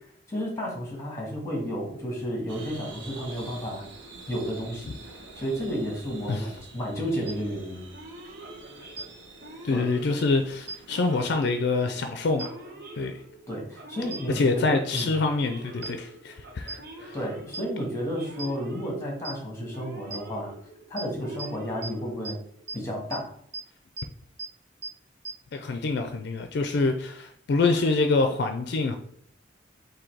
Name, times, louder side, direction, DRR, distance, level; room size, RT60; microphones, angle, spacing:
voice 1, 0.3-3.9 4.3-4.9 5.3-7.9 9.7-9.9 13.5-15.1 17.1-20.5 20.9-22.4 22.7-23.3, equal, 15° left, -1 dB, 1.4 m, -32 dB
sound 1, 2.5-11.4, right 2 dB, 80° right, 0.9 m, -47 dB
sound 2, 7.3-7.4 9.0-9.1 10.7-10.8 12.4-12.5 14.1-14.2 15.0-15.1 15.8-15.9 16.7-16.8 17.5-17.6 18.4-18.5 19.3-19.4 20.1-20.2 21.0-21.1 21.4-21.5 21.8-21.9 22.3-22.4 22.7-22.8 23.1-23.2 23.5-23.6 24.0-24.1 24.4-24.5 24.8-24.9 25.3-25.4, right 3 dB, 40° right, 0.5 m, -34 dB
Male speech man speaking / Siren, 7.9-22.7, right 1 dB, 55° right, 1.1 m, -46 dB
voice 2, 9.6-12.5 13.0-13.1 14.3-17.1 25.5-29.0, left 3 dB, 65° left, 6 dB, 0.4 m, -26 dB
3.9 x 2.7 x 4.5 m, 0.64 s
head